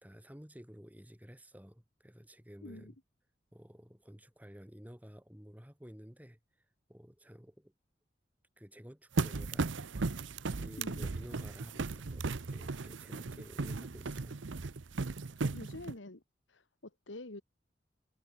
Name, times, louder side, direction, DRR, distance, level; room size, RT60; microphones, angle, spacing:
voice 1, 0.0-3.0 3.5-6.4 6.9-7.7 8.6-9.8 10.5-14.4, equal, 10° right, 2.2 m, -52 dB
voice 2, 2.6-2.9 10.8-11.0 15.4-16.2 16.5-17.4, left 2 dB, 90° left, 1.9 m, -47 dB
sound 1, 9.2-15.9, right 3 dB, 90° right, 0.8 m, -36 dB
head